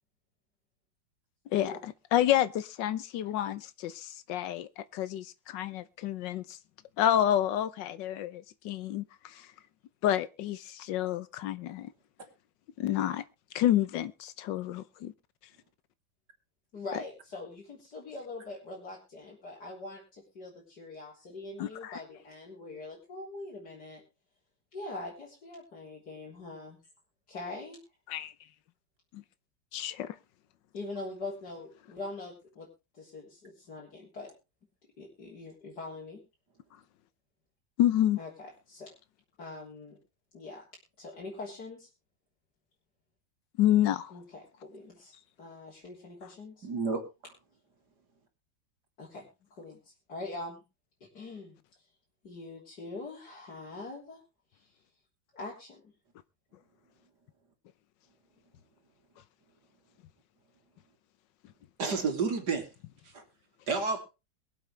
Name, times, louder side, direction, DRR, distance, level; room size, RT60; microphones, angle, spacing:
voice 1, 1.5-1.8 16.7-24.0 24.7-26.8 27.3-27.8 30.7-32.7 32.9-34.3 35.0-36.2 38.2-38.9 39.4-40.0 40.3-40.6 41.0-41.9 44.1-45.1 45.4-46.7 49.0-49.2 49.5-50.6 51.1-51.6 52.2-54.2 54.5-54.7 55.3-55.9, left 2 dB, 60° left, 4.2 m, -43 dB
voice 2, 2.1-6.4 7.0-9.0 10.0-11.9 12.8-13.2 13.5-15.1 21.6-22.0 28.1-28.3 29.1-29.2 29.7-30.1 37.8-38.2 43.6-44.1, left 12 dB, 75° left, 1.5 m, -29 dB
voice 3, 46.6-47.0 61.8-62.7 63.1-63.2 63.7-64.0, right 4 dB, 65° right, 3.0 m, -30 dB
23.0 x 7.9 x 3.3 m
omnidirectional pair, 2.0 m